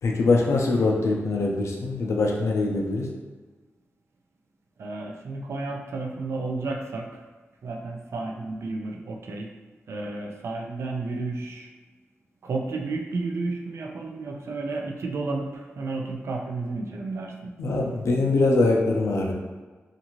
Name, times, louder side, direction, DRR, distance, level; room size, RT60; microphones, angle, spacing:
voice 1, 0.0-3.1 17.6-19.3, left 3 dB, 85° left, 0 dB, 0.5 m, -23 dB
voice 2, 4.8-7.2 7.6-9.5 9.9-11.7 12.4-17.5, right 3 dB, 70° right, 1 dB, 0.4 m, -32 dB
2.5 x 2.4 x 2.9 m, 1.3 s
wide cardioid pair, 135°, 5 cm